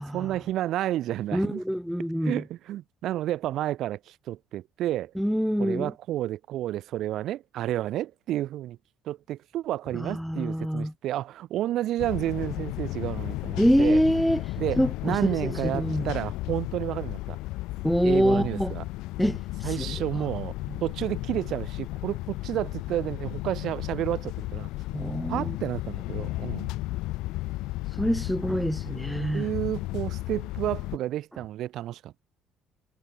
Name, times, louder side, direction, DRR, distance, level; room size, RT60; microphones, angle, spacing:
voice 1, 0.1-1.6 2.2-5.1 5.6-8.8 9.0-14.0 14.6-17.4 18.0-18.8 19.6-20.5 20.8-24.7 25.3-26.7 29.3-32.2, right 13 dB, 55° right, 3.3 m, -31 dB
voice 2, 1.3-2.4 5.2-5.9 10.0-10.9 13.6-14.4 14.8-16.1 17.8-18.7 19.2-19.9 20.1-20.3 20.7-20.8 24.9-25.6 28.0-29.5, equal, ahead, 2.2 m, -25 dB
sound 1, 12.0-31.0, left 19 dB, 85° left, 5.2 m, -34 dB
cardioid pair, 170°, 0 cm